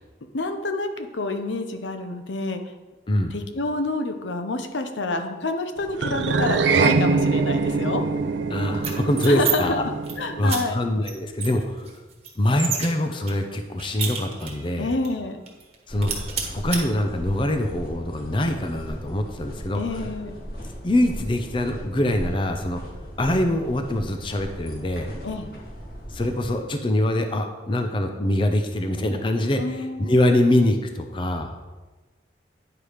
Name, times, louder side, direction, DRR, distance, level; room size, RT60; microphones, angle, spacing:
voice 1, 0.3-2.6 3.3-8.0 9.2-9.8 10.2-10.8 14.8-15.4 19.7-20.4 25.2-25.5 29.6-30.2, left 2 dB, 85° left, 7 dB, 0.8 m, -28 dB
sound 1, 6.0-10.5, right 4 dB, 80° right, 0.5 m, -23 dB
voice 2, 8.5-9.8 10.4-11.9 12.4-14.9 15.9-16.1 16.5-19.8 20.8-22.8 23.2-25.1 26.1-31.5, left 1 dB, 25° left, 6 dB, 0.6 m, -24 dB
sound 2, 8.7-9.5 9.9-10.1 10.5-10.6 11.0-11.1 11.4-12.9 13.3-14.7 15.0-15.1 15.5-15.7 16.0-16.8, right 7 dB, 35° right, 1.3 m, -29 dB
sound 3, 15.9-26.4, equal, 55° left, 1.9 m, -37 dB
9.9 x 4.8 x 5.0 m, 1.2 s
head